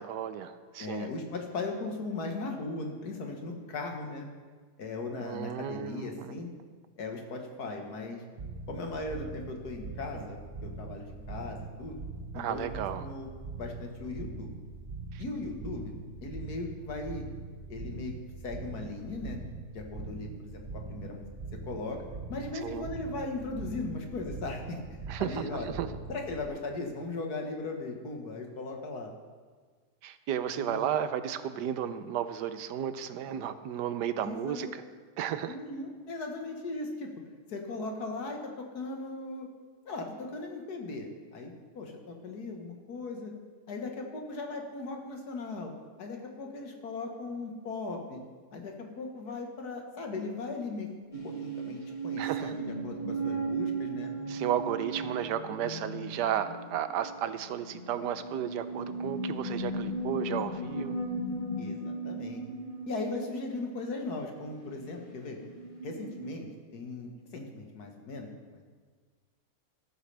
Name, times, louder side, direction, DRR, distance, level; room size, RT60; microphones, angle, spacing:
voice 1, 0.0-1.1 5.2-6.4 12.3-13.0 15.1-15.2 22.6-22.9 25.1-25.9 30.0-34.8 35.2-35.6 52.2-52.5 54.3-61.0, right 9 dB, 85° right, 11 dB, 1.3 m, -33 dB
voice 2, 0.8-4.3 4.8-6.5 7.0-8.2 8.7-12.0 12.3-13.3 13.6-14.5 15.2-15.9 16.2-17.3 17.7-18.1 18.4-19.4 19.7-20.6 20.9-21.2 21.7-22.0 22.3-25.7 26.1-29.1 30.5-30.9 34.2-34.7 35.5-37.1 37.5-39.5 39.9-43.3 43.7-45.7 46.0-48.2 48.5-50.9 51.2-54.1 61.6-62.4 62.9-65.4 65.8-66.5 66.7-68.6, left 3 dB, 70° left, 2 dB, 1.9 m, -38 dB
sound 1, 8.4-26.5, right 3 dB, 35° right, 1.0 m, -42 dB
sound 2, 51.1-66.4, right 2 dB, 30° left, 1.2 m, -37 dB
14.0 x 13.0 x 3.4 m, 1.5 s
omnidirectional pair, 1.8 m